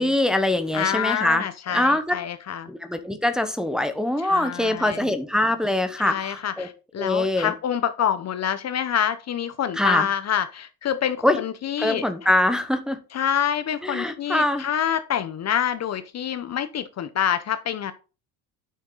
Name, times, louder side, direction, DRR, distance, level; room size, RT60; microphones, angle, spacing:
voice 1, 0.0-2.1 2.7-6.7 7.0-7.5 9.8-10.1 11.2-11.4 11.8-13.0 13.8-14.7, left 1 dB, ahead, 1.0 m, -23 dB
voice 2, 0.7-2.7 4.2-5.1 6.0-12.3 13.1-17.9, left 9 dB, 40° left, 0.8 m, -27 dB
9.3 x 6.4 x 4.0 m
cardioid pair, 115°, 41 cm